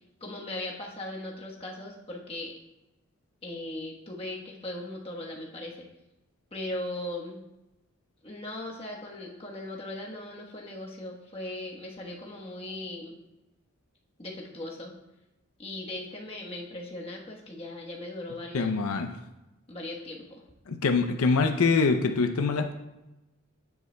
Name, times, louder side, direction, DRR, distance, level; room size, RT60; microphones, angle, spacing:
voice 1, 0.2-2.5 3.4-5.9 6.5-7.4 8.2-13.1 14.2-14.9 15.6-18.7 19.7-20.4, left 1 dB, 25° left, -2 dB, 1.1 m, -38 dB
voice 2, 18.5-19.1 20.7-22.7, left 4 dB, 80° left, 5 dB, 0.5 m, -24 dB
9.3 x 8.0 x 2.2 m, 0.97 s
head